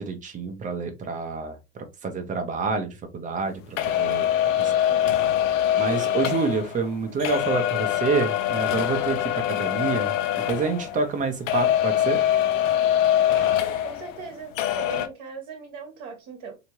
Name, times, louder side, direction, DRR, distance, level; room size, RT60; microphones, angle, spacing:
voice 1, 0.0-1.6 2.0-5.0 5.8-10.1 10.5-12.2, right 4 dB, 20° right, 0.8 m, -28 dB
sound 1, 3.8-11.2 11.5-14.3 14.6-15.1, left 11 dB, 70° left, 0.8 m, -24 dB
voice 2, 13.3-16.6, right 5 dB, 45° right, 1.2 m, -39 dB
3.3 x 2.9 x 3.0 m
supercardioid pair, 130°, 39 cm